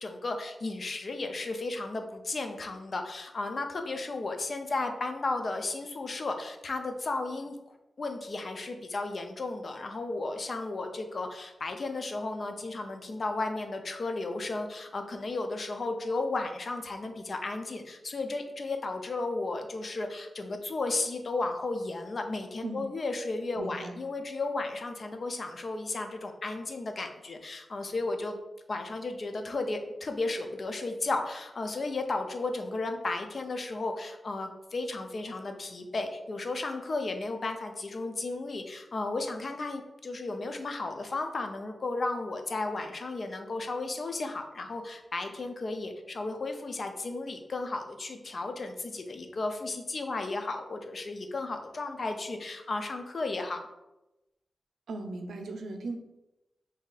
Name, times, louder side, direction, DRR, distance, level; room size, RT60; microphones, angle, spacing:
voice 1, 0.0-7.5 8.0-28.4 28.7-53.6, left 3 dB, 50° left, 5 dB, 0.5 m, -34 dB
voice 2, 23.6-24.0 54.9-55.9, right 2 dB, 90° right, 4 dB, 0.5 m, -37 dB
3.1 x 2.7 x 3.9 m, 0.97 s
wide cardioid pair, 90°, 0 cm